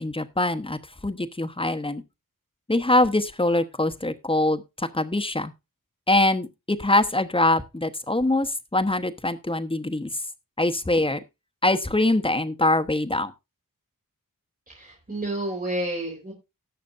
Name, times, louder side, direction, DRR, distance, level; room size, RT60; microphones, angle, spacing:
voice 1, 0.0-2.0 2.7-5.5 6.1-10.1 10.6-11.2 11.6-13.3, left 2 dB, 15° left, 8 dB, 1.0 m, -23 dB
voice 2, 14.7-16.3, right 1 dB, 25° right, -2 dB, 4.2 m, -30 dB
18.5 x 6.7 x 2.6 m, 0.24 s
wide cardioid pair, 80°, 33 cm